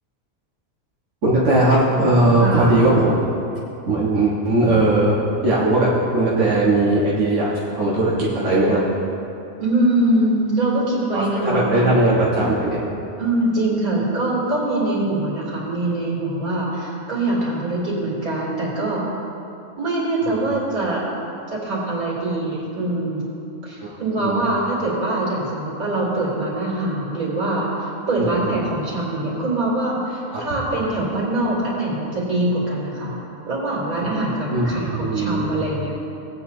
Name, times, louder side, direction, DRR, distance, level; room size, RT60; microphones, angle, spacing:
voice 1, 1.2-3.2 3.9-8.8 11.1-12.9 20.3-20.4 23.8-23.9 24.2-24.4 28.2-28.3 30.3-30.4 34.5-35.7, right 2 dB, 60° right, -7 dB, 1.8 m, -19 dB
voice 2, 2.4-2.8 9.6-12.1 13.2-19.0 19.8-21.0 21.5-23.3 23.6-33.2 33.5-35.9, right 2 dB, 85° right, -6 dB, 3.6 m, -23 dB
19.0 x 8.7 x 2.8 m, 2.8 s
omnidirectional pair, 1.5 m